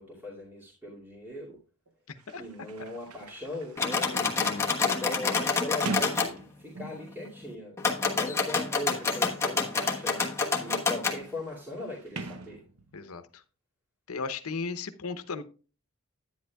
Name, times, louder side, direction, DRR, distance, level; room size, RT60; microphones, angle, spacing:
voice 1, 0.0-1.6 2.3-4.1 4.4-4.5 4.8-12.6, left 2 dB, 10° right, -5 dB, 2.4 m, -39 dB
Sliding door, 1.9-2.0 2.2-7.2 8.1-13.1, right 3 dB, 80° right, 0.8 m, -43 dB
voice 2, 2.1-2.4 4.1-4.6 12.9-13.4 14.1-15.4, left 4 dB, 75° left, 11 dB, 0.8 m, -36 dB
sound 1, 3.8-6.3 7.8-11.2, left 4 dB, 15° left, 1.2 m, -28 dB
10.5 x 9.7 x 2.3 m, 0.35 s
head